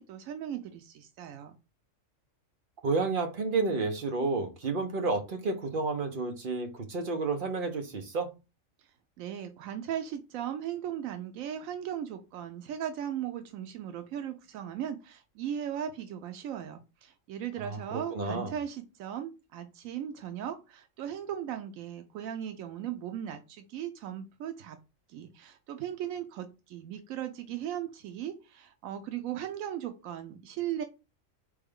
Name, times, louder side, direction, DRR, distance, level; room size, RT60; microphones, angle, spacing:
voice 1, 0.0-1.5 9.2-24.8 25.1-30.8, right 10 dB, 85° right, 8 dB, 1.0 m, -37 dB
voice 2, 2.8-8.3 17.7-18.5, right 3 dB, 50° right, 6 dB, 0.8 m, -31 dB
3.8 x 3.4 x 3.6 m, 0.28 s
omnidirectional pair, 1.4 m